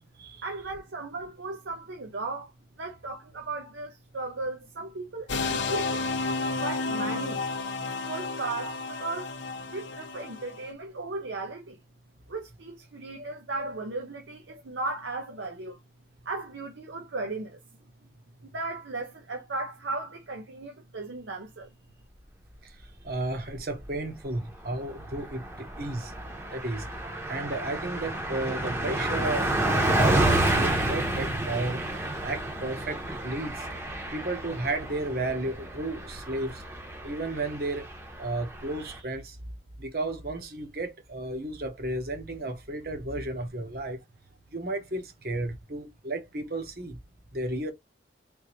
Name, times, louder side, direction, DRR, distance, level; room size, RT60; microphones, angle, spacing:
voice 1, 0.4-2.5 2.8-6.0 6.6-7.4 8.0-9.3 9.7-11.8 12.3-15.8 16.2-17.6 18.5-21.7, right 3 dB, 90° right, 0.8 m, -36 dB
sound 1, 5.3-10.6, left 3 dB, 85° left, 0.6 m, -31 dB
voice 2, 23.0-26.2 26.5-26.8 27.3-31.8 32.2-33.7 34.1-36.6 37.0-37.9 38.2-39.4 39.8-44.0 44.5-47.0 47.3-47.7, right 2 dB, 55° right, 1.0 m, -33 dB
Car passing by, 23.3-24.0 24.3-24.4 24.7-39.0, right 1 dB, 15° right, 0.8 m, -30 dB
3.6 x 2.7 x 3.0 m
head